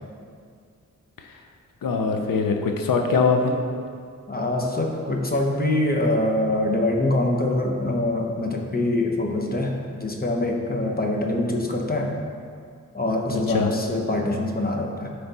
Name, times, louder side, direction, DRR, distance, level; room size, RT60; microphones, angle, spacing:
voice 1, 1.8-3.6 13.3-13.7, left 4 dB, 85° left, 4 dB, 0.7 m, -22 dB
voice 2, 4.3-12.2 12.9-15.1, left 1 dB, 30° left, 1 dB, 0.8 m, -24 dB
9.8 x 3.4 x 4.0 m, 2.2 s
cardioid pair, 75°, 33 cm